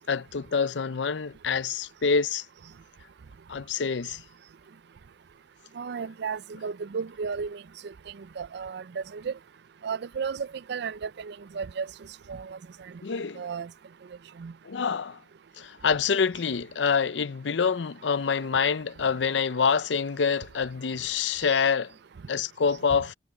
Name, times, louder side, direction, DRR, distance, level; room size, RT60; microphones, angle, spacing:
voice 1, 0.1-2.5 3.5-4.2 13.0-13.4 14.6-15.2 15.6-21.9 22.3-23.1, left 6 dB, 80° left, 0.6 m, -26 dB
voice 2, 5.8-7.9 8.4-9.3 9.8-11.9 12.3-12.6 13.4-13.7 14.4-14.5 21.5-21.6, right 5 dB, 65° right, 0.4 m, -34 dB
head